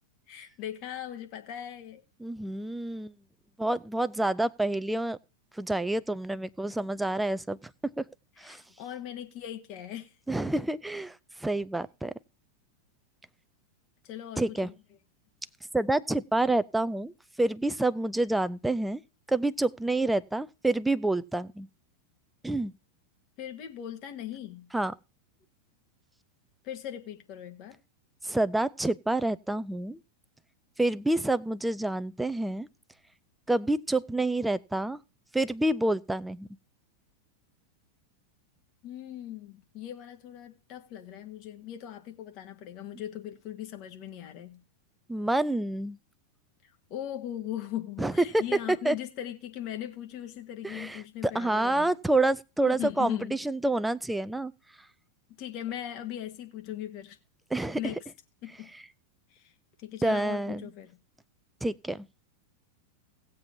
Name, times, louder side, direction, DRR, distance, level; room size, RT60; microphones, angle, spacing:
voice 1, 0.3-2.0 8.4-10.1 14.0-14.7 23.4-24.7 26.6-27.8 38.8-44.6 46.6-51.9 52.6-53.4 55.4-57.2 57.8-58.0 58.4-58.7 59.3-59.5 59.8-61.0, left 11 dB, 40° left, 1.6 m, -39 dB
voice 2, 2.2-3.1 3.6-5.2 5.6-8.1 8.4-8.6 10.3-12.1 14.4-14.7 15.7-17.1 17.4-19.0 19.3-21.7 22.4-22.7 24.7-24.9 28.2-30.0 30.8-32.7 33.5-35.0 35.3-36.5 45.1-46.0 48.0-49.0 50.6-54.5 57.5-57.9 60.0-60.7 61.6-62.1, right 2 dB, 5° right, 0.5 m, -28 dB
18.5 x 7.5 x 2.8 m
figure-of-eight pair, 90°, 0 cm